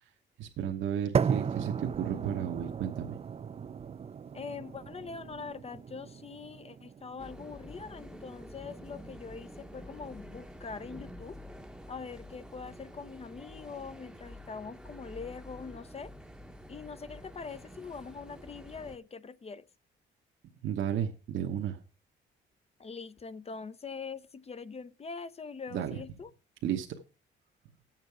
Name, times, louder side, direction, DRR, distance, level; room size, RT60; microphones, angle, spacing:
voice 1, 0.4-3.2 20.6-21.8 25.7-26.0 26.6-26.9, right 9 dB, 75° right, 1.1 m, -33 dB
sound 1, 1.1-9.2, right 6 dB, 30° right, 0.4 m, -36 dB
voice 2, 4.3-11.4 11.9-16.1 16.7-19.7 22.8-26.3, left 5 dB, 30° left, 0.6 m, -43 dB
sound 2, 7.2-19.0, equal, 5° right, 0.9 m, -48 dB
9.3 x 7.4 x 4.7 m
cardioid pair, 90°, 20 cm